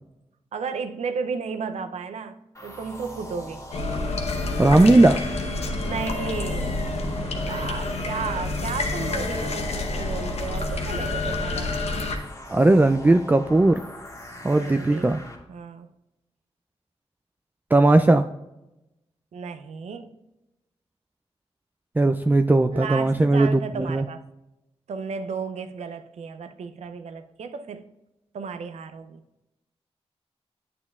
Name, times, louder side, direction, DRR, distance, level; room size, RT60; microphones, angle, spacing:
voice 1, 0.5-3.6 5.8-6.7 7.5-11.7 14.5-15.1 15.5-15.9 19.3-20.1 22.7-24.2 24.9-27.9 28.3-29.2, right 5 dB, 80° right, 0.5 m, -33 dB
sound 1, 2.5-15.4, left 1 dB, 30° left, 1.8 m, -42 dB
sound 2, 3.7-12.2, left 2 dB, 70° left, 0.9 m, -28 dB
voice 2, 4.6-5.2 12.5-13.8 14.4-15.2 17.7-18.3 22.0-24.0, right 2 dB, 15° right, 0.3 m, -18 dB
8.5 x 6.9 x 2.3 m
cardioid pair, 50°, 11 cm